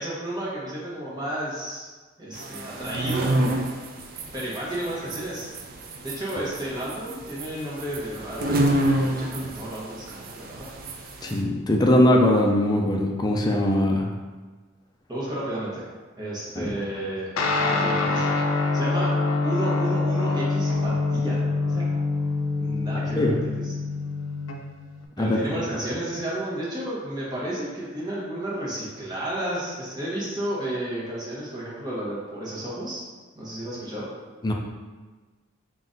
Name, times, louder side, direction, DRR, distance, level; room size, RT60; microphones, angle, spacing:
voice 1, 0.0-1.9 2.2-3.3 4.3-5.5 6.0-10.6 15.1-15.9 16.2-17.3 17.6-18.3 18.7-19.1 19.4-21.9 22.6-23.7 25.2-33.0 33.4-34.1, right 1 dB, 20° right, -7 dB, 1.1 m, -32 dB
sound 1, 2.3-11.4, right 1 dB, 45° right, 0.4 m, -28 dB
voice 2, 11.2-14.1 16.6-16.7 23.2-23.3 25.2-25.4 34.4-34.5, left 1 dB, 20° left, 1 dB, 0.4 m, -21 dB
Guitar, 17.4-25.1, left 3 dB, 80° left, 0.5 m, -25 dB
3.8 x 2.5 x 3.8 m, 1.3 s
head